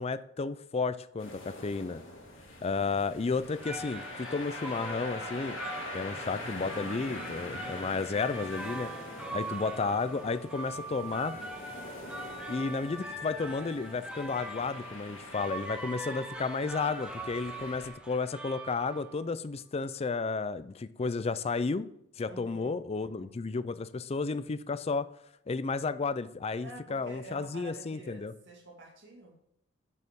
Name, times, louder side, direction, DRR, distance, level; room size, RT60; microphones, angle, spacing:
voice 1, 0.0-2.0 2.6-5.6 5.9-8.9 9.3-11.3 12.5-21.9 22.2-25.1 25.5-28.3, left 4 dB, 30° left, 15 dB, 0.4 m, -32 dB
sound 1, 1.2-17.9, left 1 dB, 80° left, 2.2 m, -44 dB
sound 2, 3.4-19.3, right 2 dB, 5° right, 1.0 m, -42 dB
voice 2, 9.2-9.6 22.3-23.3 26.6-29.4, right 3 dB, 65° right, -1 dB, 1.9 m, -49 dB
8.4 x 6.7 x 3.6 m, 0.73 s
head